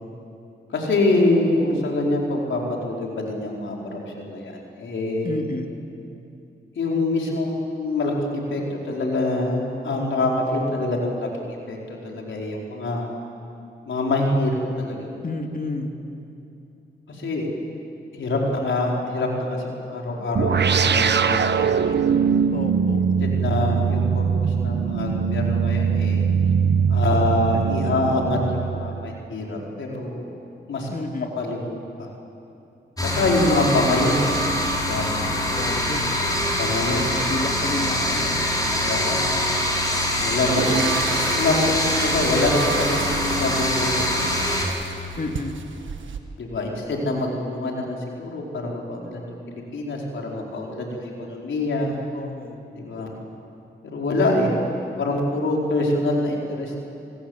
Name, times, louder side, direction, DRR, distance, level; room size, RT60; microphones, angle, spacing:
voice 1, 0.7-5.3 6.7-13.2 13.9-15.1 17.1-17.5 18.1-21.9 23.2-26.2 26.9-30.3 30.7-30.9 31.4-32.1 33.0-34.5 34.9-35.3 36.5-37.1 37.9-38.3 38.6-39.3 40.2-41.0 41.3-44.3 46.4-52.0 52.7-53.1 53.8-54.5 55.0-56.8, left 2 dB, 85° left, -1 dB, 4.6 m, -25 dB
voice 2, 5.2-5.7 15.2-15.9 22.5-23.0 30.9-31.3 35.5-36.2 37.1-38.4 45.2-45.6 52.1-52.6, left 2 dB, 50° left, 3 dB, 3.2 m, -31 dB
sound 1, 20.4-29.2, right 6 dB, 65° right, 1.0 m, -21 dB
sound 2, 33.0-44.6, left 1 dB, 20° left, 6.0 m, -24 dB
sound 3, 40.2-46.2, right 5 dB, 80° right, 1.5 m, -32 dB
28.0 x 19.0 x 8.1 m, 2.7 s
cardioid pair, 50°, 19 cm